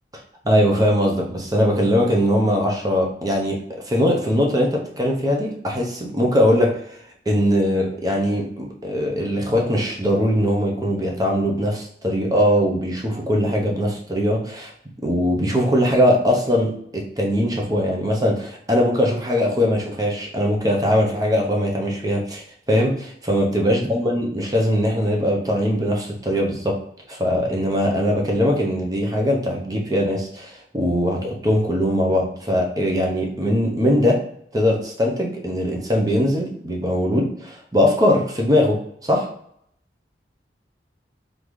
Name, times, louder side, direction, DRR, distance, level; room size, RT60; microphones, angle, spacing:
voice 1, 0.4-3.6 3.8-7.0 7.3-14.7 15.0-26.8 27.1-34.2 34.5-39.3, equal, 20° right, 0 dB, 0.8 m, -21 dB
3.9 x 3.8 x 3.1 m, 0.68 s
head